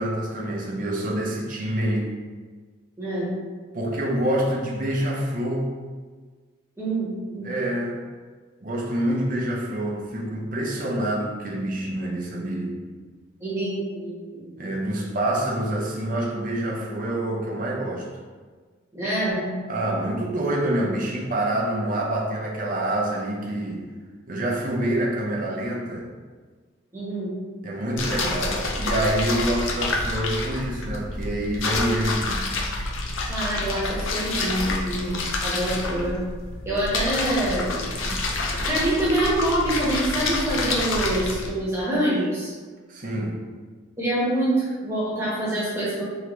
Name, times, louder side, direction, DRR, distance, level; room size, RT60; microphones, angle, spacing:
voice 1, 0.0-2.2 3.7-5.7 7.4-8.0 8.6-12.8 14.6-18.1 19.7-23.8 24.3-26.1 27.6-32.5 42.9-43.4, right 1 dB, 40° right, -2 dB, 0.7 m, -26 dB
voice 2, 3.0-3.3 6.8-7.4 13.4-14.2 14.5-14.6 18.9-19.5 26.9-27.3 33.3-36.2 36.6-38.1 38.7-42.5 44.0-46.0, right 1 dB, 10° right, -8 dB, 1.1 m, -26 dB
sound 1, 28.0-41.5, left 2 dB, 70° left, 0.6 m, -28 dB
4.8 x 3.1 x 3.0 m, 1.5 s
head